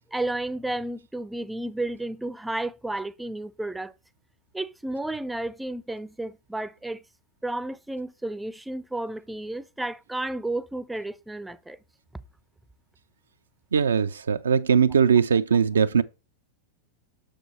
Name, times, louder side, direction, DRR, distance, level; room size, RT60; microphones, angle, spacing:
voice 1, 0.1-3.9 4.5-7.0 7.4-11.8, right 2 dB, 5° right, 0.5 m, -32 dB
voice 2, 13.7-16.0, right 6 dB, 70° right, 0.4 m, -20 dB
6.5 x 6.5 x 3.0 m
figure-of-eight pair, 90°, 0 cm